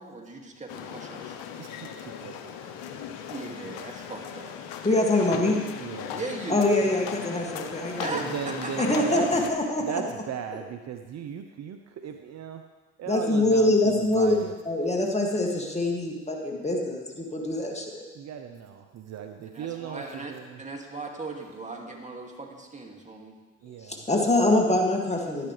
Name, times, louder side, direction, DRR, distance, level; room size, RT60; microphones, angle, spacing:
voice 1, 0.0-1.4 3.3-4.6 6.1-6.7 8.0-9.4 19.4-23.4, right 3 dB, 20° right, 1 dB, 2.2 m, -38 dB
sound 1, 0.7-9.5, left 8 dB, 70° left, 0.9 m, -38 dB
voice 2, 1.6-3.3 5.8-6.2 8.1-9.4 9.9-12.6 13.0-14.5 18.1-20.6 23.6-24.0, right 8 dB, 50° right, 6 dB, 0.8 m, -37 dB
voice 3, 4.8-5.6 6.5-8.3 8.8-9.8 13.1-14.4 14.7-17.9 23.9-25.5, left 2 dB, 20° left, 0 dB, 2.2 m, -24 dB
11.5 x 11.0 x 3.3 m, 1.3 s
hypercardioid pair, 55°, 35 cm